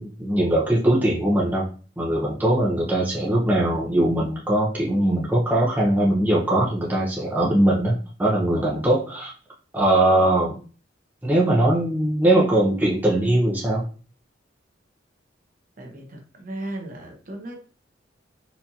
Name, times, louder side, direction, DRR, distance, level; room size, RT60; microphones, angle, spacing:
voice 1, 0.0-1.7 2.0-9.3 9.7-10.5 11.2-13.9, right 1 dB, 10° right, -4 dB, 0.6 m, -21 dB
voice 2, 15.8-17.6, right 1 dB, 45° right, 1 dB, 0.9 m, -36 dB
4.3 x 2.5 x 2.8 m, 0.38 s
head